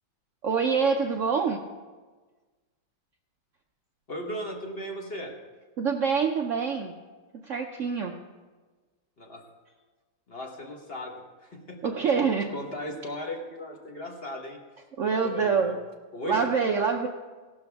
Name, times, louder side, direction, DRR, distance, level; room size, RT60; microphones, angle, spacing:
voice 1, 0.4-1.6 5.8-6.9 7.3-8.2 11.8-12.5 15.0-15.8 16.2-17.1, right 5 dB, 90° right, 3 dB, 0.6 m, -25 dB
voice 2, 4.1-5.3 9.2-9.4 10.3-11.1 11.4-11.8 12.0-14.6 15.0-15.7 16.1-16.4, left 1 dB, 35° left, 1 dB, 1.3 m, -37 dB
15.5 x 12.0 x 3.5 m, 1.3 s
omnidirectional pair, 2.2 m